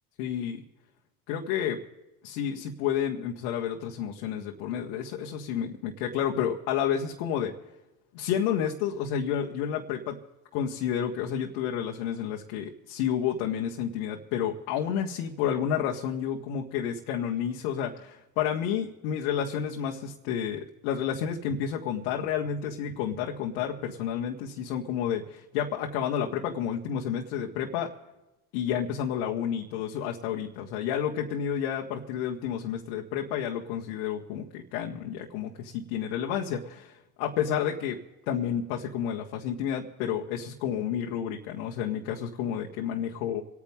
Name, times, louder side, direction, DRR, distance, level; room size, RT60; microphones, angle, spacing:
voice 1, 0.2-0.6 1.3-1.8 2.2-7.5 8.1-10.2 10.5-27.9 28.5-38.0 38.3-43.4, left 8 dB, 80° left, 0 dB, 1.6 m, -30 dB
28.0 x 9.6 x 3.7 m, 1.0 s
supercardioid pair, 95°, 41 cm